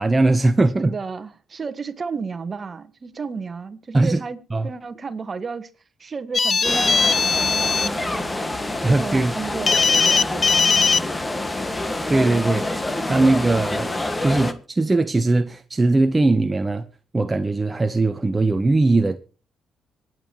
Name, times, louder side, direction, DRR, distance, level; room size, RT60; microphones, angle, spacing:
voice 1, 0.0-0.9 3.9-4.2 4.5-4.7 8.8-9.3 12.1-12.7 13.1-13.9 14.2-16.8 17.1-19.2, right 2 dB, 20° right, 0.9 m, -19 dB
voice 2, 0.8-5.7 6.0-8.6 8.9-11.3, right 5 dB, 35° right, 1.5 m, -33 dB
sound 1, 6.3-7.9 9.7-11.0, left 5 dB, 35° left, 0.6 m, -19 dB
sound 2, 6.6-14.5, left 2 dB, 15° left, 1.7 m, -27 dB
25.5 x 9.3 x 3.0 m
cardioid pair, 90°, 0 cm